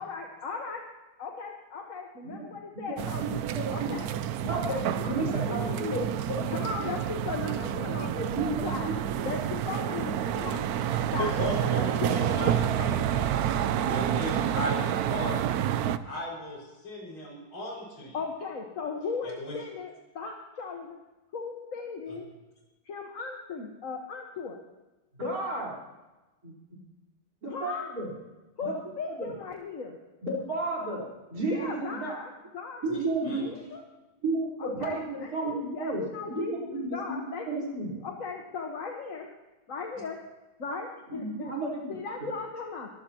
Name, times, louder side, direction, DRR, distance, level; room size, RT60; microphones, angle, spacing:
voice 1, 0.0-0.9 1.2-3.2 3.7-4.1 4.5-6.0 6.5-8.1 8.6-8.9 9.2-10.6 11.1-11.3 11.7-12.5 18.1-21.0 21.3-22.2 22.8-24.6 27.5-27.9 28.6-30.0 31.5-32.8 33.4-33.8 34.6-37.5 38.0-39.3 39.7-40.2 40.6-41.5 41.9-42.9, left 4 dB, 45° left, 1 dB, 1.6 m, -37 dB
voice 2, 2.2-3.9 4.4-6.6 7.7-9.3 25.2-25.8 26.4-26.5 27.4-28.1 28.6-28.8 29.1-29.3 30.2-32.2 32.8-33.4 34.2-36.0 36.3-38.0 41.1-41.9 42.2-42.3, right 2 dB, 40° right, -4 dB, 4.8 m, -33 dB
sound 1, 3.0-16.0, right 10 dB, 75° right, 0.8 m, -29 dB
voice 3, 11.2-15.4 16.0-18.2 19.2-19.6 22.1-22.2 32.8-33.4, equal, 80° left, -3 dB, 6.6 m, -36 dB
23.0 x 15.5 x 3.0 m, 1.1 s
omnidirectional pair, 2.3 m